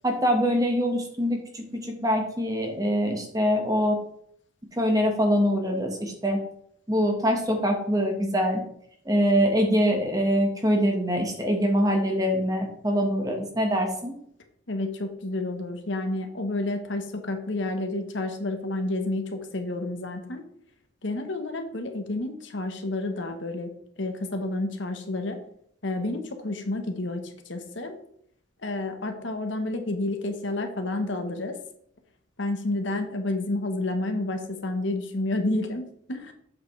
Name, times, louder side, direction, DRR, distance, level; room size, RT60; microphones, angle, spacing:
voice 1, 0.0-4.0 4.8-6.4 6.9-8.6 9.0-14.1, equal, 15° right, 2 dB, 1.4 m, -24 dB
voice 2, 14.7-20.4 21.0-23.7 24.0-25.4 25.8-27.9 28.6-31.6 32.4-36.3, left 2 dB, 65° left, 5 dB, 1.2 m, -30 dB
7.7 x 6.9 x 3.3 m, 0.70 s
head